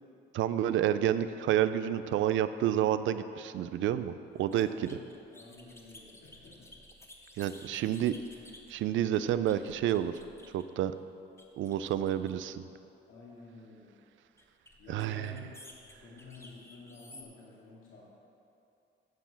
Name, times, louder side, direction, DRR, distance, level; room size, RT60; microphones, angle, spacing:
voice 1, 0.3-4.9 7.4-8.2 8.7-10.1 10.5-11.0 11.6-12.7 14.9-15.3, right 11 dB, 75° right, 12 dB, 0.4 m, -29 dB
sound 1, 4.4-10.8 11.4-12.6 14.4-17.2, left 1 dB, 15° left, 1.1 m, -55 dB
voice 2, 4.6-5.1 5.3-6.7 7.4-7.8 13.1-14.0 14.8-18.0, left 3 dB, 85° left, -6 dB, 2.2 m, -51 dB
9.5 x 4.9 x 7.2 m, 2.7 s
cardioid pair, 90°, 20 cm